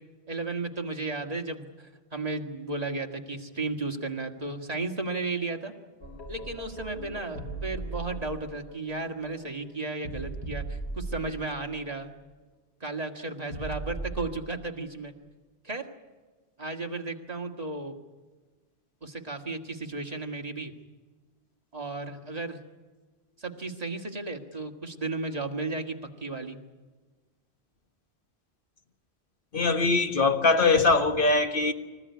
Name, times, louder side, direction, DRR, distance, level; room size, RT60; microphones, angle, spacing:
voice 1, 0.3-5.7 6.3-12.1 12.8-15.1 15.6-15.9 16.6-17.9 19.0-20.7 21.7-22.6 23.4-26.6, right 3 dB, 35° right, 2.0 m, -34 dB
sound 1, 6.0-11.8 13.5-14.5, right 2 dB, 75° left, 4.1 m, -38 dB
voice 2, 29.5-31.7, left 3 dB, 55° left, 1.7 m, -22 dB
26.0 x 15.0 x 9.6 m
omnidirectional pair, 1.1 m